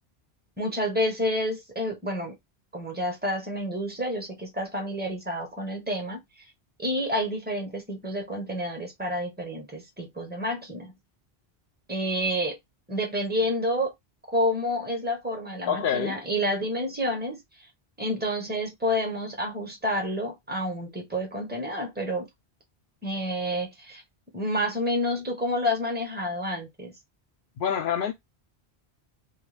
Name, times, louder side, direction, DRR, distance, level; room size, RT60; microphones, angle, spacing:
voice 1, 0.6-2.4 2.7-6.2 6.8-10.9 11.9-12.6 12.9-13.9 14.3-17.4 18.0-22.3 23.0-24.0 24.3-26.9, equal, 10° right, 0.6 m, -29 dB
voice 2, 15.7-16.2 27.6-28.1, left 8 dB, 60° left, 0.7 m, -26 dB
2.3 x 2.2 x 3.2 m
omnidirectional pair, 1.1 m